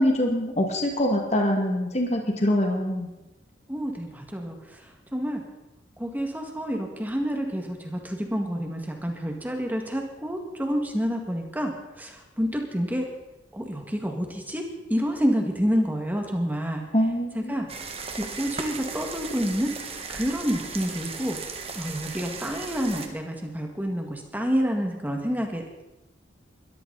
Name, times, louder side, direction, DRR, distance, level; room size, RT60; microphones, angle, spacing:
voice 1, 0.0-3.1 16.9-17.6, left 1 dB, 35° left, 2 dB, 2.1 m, -24 dB
voice 2, 3.7-4.8 5.1-5.4 6.0-11.7 12.0-13.1 13.5-14.6 14.9-16.8 17.3-17.7 18.2-19.7 20.1-21.4 21.7-25.8, equal, 10° right, 2 dB, 1.9 m, -28 dB
sound 1, 17.7-23.1, right 4 dB, 30° right, 1.5 m, -36 dB
21.0 x 14.0 x 4.1 m, 1.0 s
head